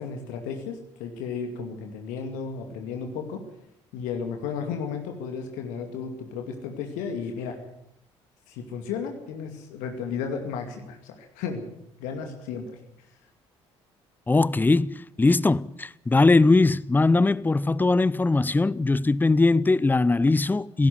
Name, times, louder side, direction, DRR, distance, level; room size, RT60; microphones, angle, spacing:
voice 1, 0.0-3.4 3.9-7.6 8.5-11.7 12.0-12.8, left 6 dB, 60° left, 2.3 m, -34 dB
voice 2, 14.3-20.9, left 3 dB, 10° left, 0.7 m, -20 dB
17.5 x 15.5 x 9.5 m
figure-of-eight pair, 50°, 15 cm